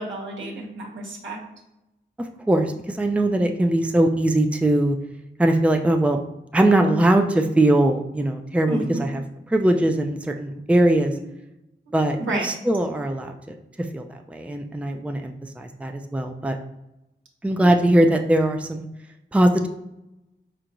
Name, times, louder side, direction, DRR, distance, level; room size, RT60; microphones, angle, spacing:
voice 1, 0.0-1.4 8.6-9.0 11.1-11.2 11.9-12.0 12.2-12.5 17.6-17.7, right 2 dB, 80° right, -2 dB, 1.3 m, -30 dB
voice 2, 2.5-5.0 5.4-6.2 6.5-9.2 9.5-11.1 11.9-13.5 13.9-16.6 17.4-18.9 19.3-19.7, right 1 dB, 5° right, 4 dB, 0.5 m, -21 dB
4.5 x 4.5 x 2.6 m, 0.89 s
cardioid pair, 40°, 20 cm